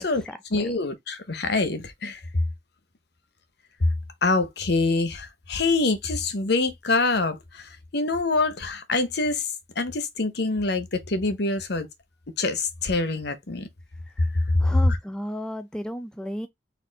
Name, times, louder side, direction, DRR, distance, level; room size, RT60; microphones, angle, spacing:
voice 1, 0.0-0.8 14.6-16.5, equal, 5° left, 0.4 m, -34 dB
voice 2, 0.5-2.2 4.2-9.5 9.8-11.9 12.4-13.7 14.2-14.3 14.9-15.0, left 3 dB, 60° left, 0.9 m, -25 dB
4.3 x 2.6 x 3.8 m
head